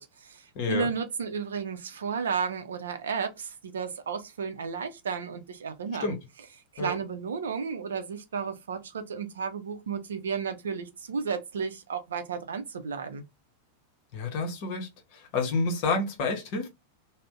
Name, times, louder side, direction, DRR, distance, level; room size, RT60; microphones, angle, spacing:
voice 1, 0.0-6.2 6.7-13.2, right 6 dB, 65° right, 0.5 m, -33 dB
voice 2, 0.5-0.9 6.0-6.2 6.8-6.9 14.1-16.7, left 3 dB, 45° left, 0.7 m, -29 dB
2.5 x 2.0 x 3.5 m
figure-of-eight pair, 90°, 0 cm